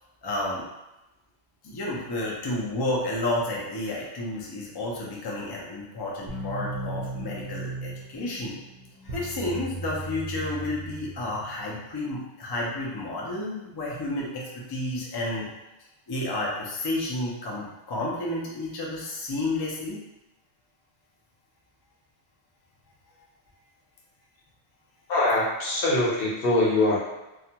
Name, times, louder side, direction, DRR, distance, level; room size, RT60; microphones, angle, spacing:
voice 1, 0.2-0.6 1.6-8.6 9.0-15.5 16.1-20.0, left 2 dB, 40° left, -4 dB, 0.3 m, -31 dB
sound 1, 6.3-11.9, right 2 dB, 60° right, 0.7 m, -36 dB
voice 2, 25.1-27.0, left 2 dB, 65° left, -5 dB, 0.9 m, -23 dB
2.3 x 2.2 x 2.7 m, 0.98 s
omnidirectional pair, 1.1 m